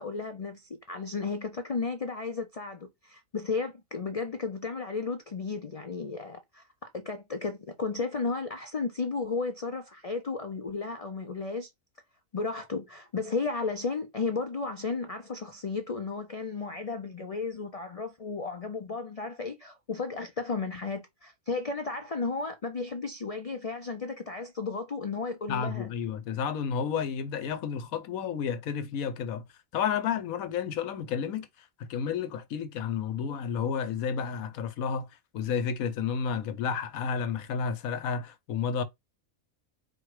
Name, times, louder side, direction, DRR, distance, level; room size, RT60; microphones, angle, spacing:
voice 1, 0.0-11.7 12.3-25.9, left 4 dB, 60° left, 0.3 m, -34 dB
voice 2, 25.5-29.4 29.7-35.1 35.3-38.8, left 7 dB, 90° left, 1.2 m, -31 dB
4.3 x 2.3 x 4.7 m
omnidirectional pair, 1.4 m